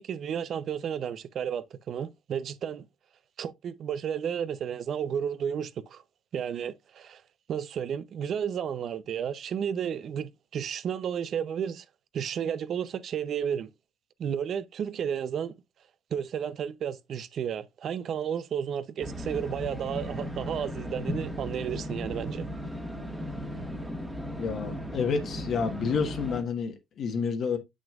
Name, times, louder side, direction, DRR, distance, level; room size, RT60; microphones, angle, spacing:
voice 1, 0.0-2.8 3.4-6.0 6.3-7.2 7.5-11.9 12.1-13.7 14.2-15.5 16.1-22.5, right 8 dB, 50° right, 0.5 m, -32 dB
sound 1, 19.0-26.4, equal, 5° right, 1.4 m, -36 dB
voice 2, 24.4-27.6, left 5 dB, 50° left, 1.3 m, -29 dB
7.1 x 6.2 x 2.4 m
cardioid pair, 130°, 0 cm